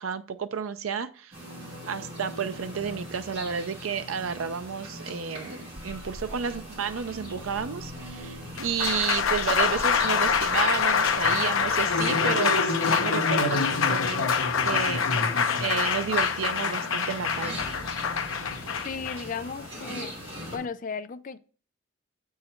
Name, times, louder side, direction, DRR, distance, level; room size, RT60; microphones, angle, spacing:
voice 1, 0.0-1.4 1.9-14.3 14.6-17.6, right 7 dB, 90° right, 0.5 m, -31 dB
sound 1, 1.3-20.6, equal, 30° right, 2.8 m, -41 dB
sound 2, 5.8-11.8, equal, 50° right, 2.2 m, -46 dB
Applause, 8.4-20.6, left 5 dB, 85° left, 0.7 m, -25 dB
voice 2, 18.8-20.1 20.5-21.4, left 5 dB, 40° left, 0.4 m, -35 dB
7.5 x 4.7 x 4.4 m
head